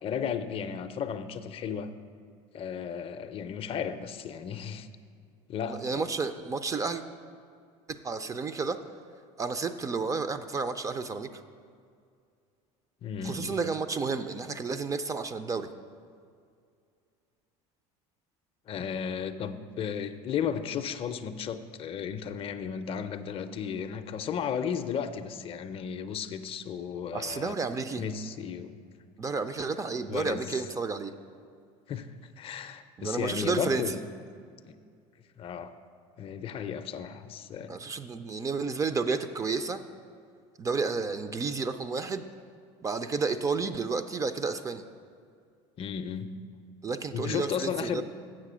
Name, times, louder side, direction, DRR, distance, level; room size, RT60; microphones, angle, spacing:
voice 1, 0.0-1.9 2.5-4.9 5.5-6.0 13.0-13.6 18.7-27.5 28.0-29.1 30.1-30.5 31.9-32.1 32.4-34.0 34.7-34.8 35.4-35.7 36.2-37.8 45.8-46.3 47.1-48.0, left 7 dB, 40° left, 10 dB, 0.5 m, -34 dB
voice 2, 5.7-7.0 7.9-8.8 9.4-11.4 13.2-15.7 27.1-28.0 29.2-31.1 33.0-34.0 37.7-39.8 40.6-42.2 42.8-44.8 46.8-48.0, right 4 dB, 20° right, 10 dB, 0.4 m, -31 dB
7.5 x 6.3 x 6.1 m, 2.2 s
supercardioid pair, 110°, 15 cm